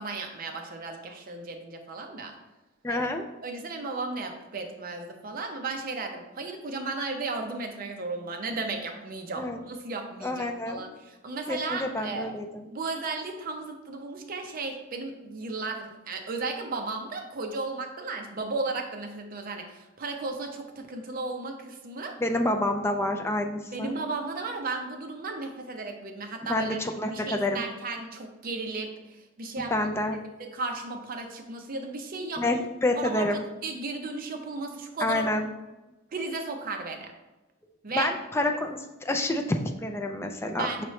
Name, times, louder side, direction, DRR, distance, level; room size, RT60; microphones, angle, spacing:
voice 1, 0.0-2.3 2.9-3.1 3.4-12.3 12.7-22.1 23.7-26.8 27.1-28.9 29.4-29.7 30.5-32.7 33.0-33.3 33.6-35.2 36.1-37.1 37.8-38.1 40.6-40.9, right 3 dB, 45° right, 4 dB, 0.6 m, -35 dB
voice 2, 2.8-3.3 9.4-9.6 10.2-10.8 11.5-12.7 22.2-23.9 26.5-27.6 29.7-30.2 32.4-33.4 35.0-35.5 37.9-40.7, left 1 dB, 15° left, 4 dB, 0.3 m, -28 dB
5.6 x 2.9 x 3.1 m, 1.1 s
head